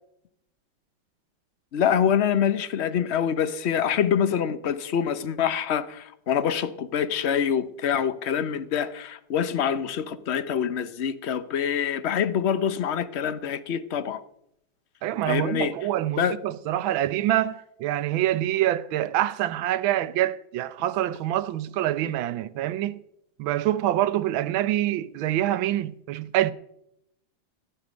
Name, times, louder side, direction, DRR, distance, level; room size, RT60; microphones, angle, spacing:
voice 1, 1.7-14.2 15.3-15.7 16.2-16.4, left 8 dB, 60° left, 0.7 m, -25 dB
voice 2, 15.0-23.0 23.4-26.5, right 13 dB, 80° right, 1.5 m, -26 dB
15.0 x 11.5 x 5.1 m
omnidirectional pair, 2.2 m